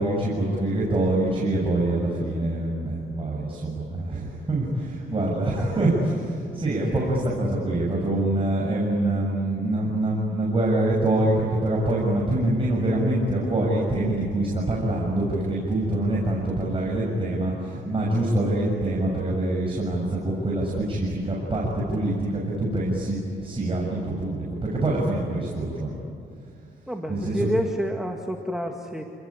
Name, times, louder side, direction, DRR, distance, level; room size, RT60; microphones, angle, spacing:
voice 1, 0.0-26.0 27.1-27.5, right 1 dB, 25° right, -4 dB, 7.2 m, -25 dB
voice 2, 6.9-7.2 26.9-29.1, equal, 5° right, 2 dB, 2.2 m, -29 dB
29.5 x 20.5 x 9.9 m, 2.6 s
cardioid pair, 90°, 20 cm